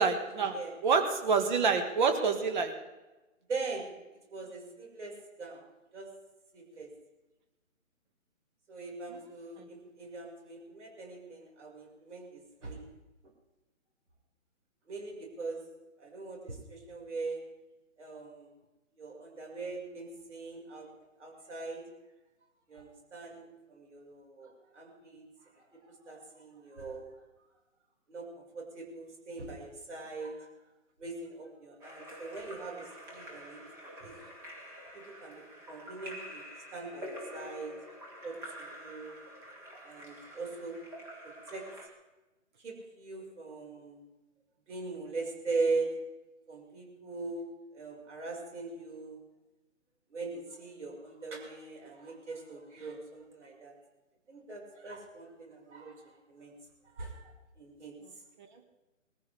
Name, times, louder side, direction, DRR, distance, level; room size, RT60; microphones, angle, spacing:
voice 1, 0.0-0.6 0.8-2.7, right 5 dB, 35° right, 6 dB, 1.9 m, -27 dB
voice 2, 3.5-3.8 4.3-5.6 5.9-6.1 6.5-6.9 8.7-12.9 14.9-15.6 16.0-17.4 18.0-18.5 19.0-20.9 21.2-21.8 22.7-25.2 25.5-27.1 28.1-30.5 31.0-33.6 34.0-34.1 34.9-36.4 36.7-37.7 38.2-39.2 39.8-40.8 41.2-41.6 42.6-44.0 44.7-45.9 46.5-47.5 47.7-49.2 50.1-53.7 54.3-56.5 56.9-57.9, right 3 dB, 60° right, 0 dB, 5.8 m, -41 dB
Splash splatter / Drip / Trickle dribble, 31.8-41.9, equal, 5° right, 1.2 m, -47 dB
20.5 x 14.5 x 3.5 m, 1.1 s
hypercardioid pair, 155°, 40 cm